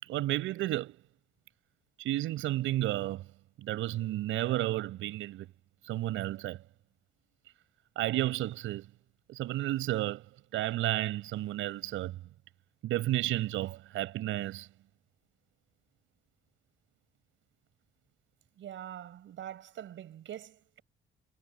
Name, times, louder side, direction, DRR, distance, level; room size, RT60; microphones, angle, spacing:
voice 1, 0.0-1.0 2.0-3.2 3.6-5.5 5.8-6.6 8.0-8.9 9.3-10.2 10.5-12.2 12.8-14.7, right 15 dB, 90° right, 6.0 m, -32 dB
voice 2, 18.6-20.8, right 11 dB, 70° right, 7.1 m, -44 dB
cardioid pair, 90°, 20 cm